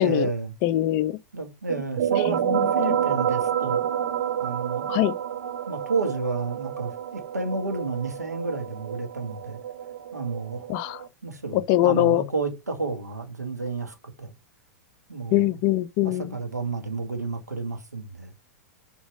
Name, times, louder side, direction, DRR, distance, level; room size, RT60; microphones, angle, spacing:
voice 1, 0.0-0.5 1.3-3.8 4.4-5.0 5.7-9.6 10.1-10.7 11.2-14.3 15.1-15.6 16.0-18.3, right 3 dB, 80° right, 1.6 m, -31 dB
voice 2, 0.6-1.2 2.3-3.0 4.9-5.2 10.7-11.0 11.5-12.2 15.3-16.4, left 15 dB, 40° left, 0.5 m, -23 dB
sound 1, 1.7-11.1, right 9 dB, 55° right, 0.5 m, -29 dB
7.1 x 3.9 x 4.7 m
figure-of-eight pair, 100°, 9 cm